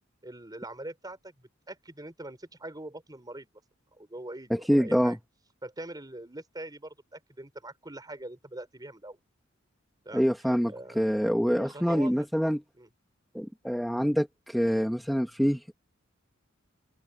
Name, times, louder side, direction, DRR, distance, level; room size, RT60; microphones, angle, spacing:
voice 1, 0.2-3.5 3.9-5.2 5.6-9.2 10.0-10.3 10.7-11.0 11.5-12.1 12.8-12.9, right 1 dB, 20° right, 4.3 m, -42 dB
voice 2, 4.5-5.2 10.1-12.6 13.3-15.7, equal, ahead, 1.5 m, -26 dB
open air
head